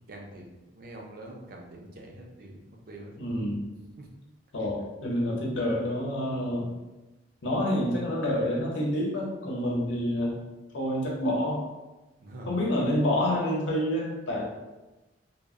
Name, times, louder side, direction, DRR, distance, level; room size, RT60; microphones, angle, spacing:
voice 1, 0.1-3.1 4.0-4.1 12.2-12.6, right 1 dB, 50° right, 0 dB, 0.4 m, -45 dB
voice 2, 3.2-3.7 4.5-6.7 7.4-10.4 10.7-11.7 12.5-14.4, left 1 dB, 75° left, -3 dB, 0.7 m, -28 dB
2.0 x 2.0 x 3.5 m, 1.1 s
head